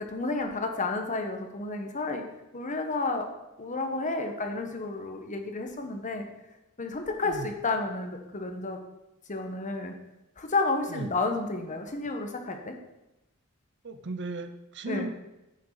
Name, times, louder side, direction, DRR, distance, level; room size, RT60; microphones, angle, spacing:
voice 1, 0.0-2.2 2.5-3.3 3.6-6.3 6.8-8.8 9.3-9.9 10.4-12.7 14.9-15.1, left 3 dB, 35° left, 4 dB, 1.3 m, -31 dB
voice 2, 13.8-15.1, right 2 dB, 55° right, 9 dB, 0.8 m, -36 dB
10.0 x 9.0 x 4.0 m, 0.94 s
head